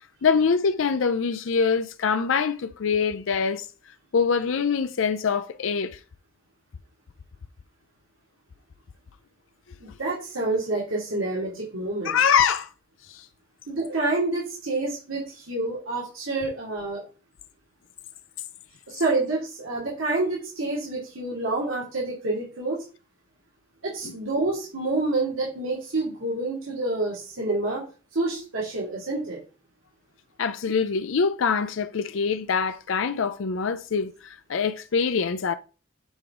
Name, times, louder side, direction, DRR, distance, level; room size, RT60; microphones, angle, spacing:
voice 1, 0.2-3.7 4.1-6.0 12.0-12.7 13.1-13.3 24.0-24.1 30.4-35.5, left 6 dB, 70° left, 0.5 m, -24 dB
voice 2, 9.8-12.2 13.7-17.0 18.9-22.8 23.8-27.8 28.1-29.4, right 2 dB, 80° right, 2.6 m, -28 dB
8.1 x 4.9 x 3.7 m
head